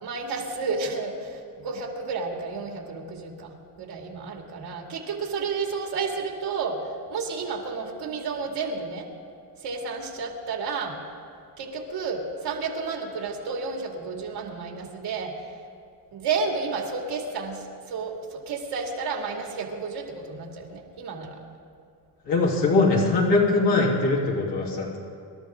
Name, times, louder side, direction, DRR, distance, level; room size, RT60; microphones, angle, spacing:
voice 1, 0.0-9.1 9.6-11.0 11.6-15.5 16.1-21.4, right 4 dB, 70° right, 1 dB, 2.6 m, -31 dB
voice 2, 22.3-25.0, left 3 dB, 75° left, -4 dB, 3.5 m, -21 dB
25.5 x 12.5 x 3.8 m, 2.4 s
cardioid pair, 105°, 42 cm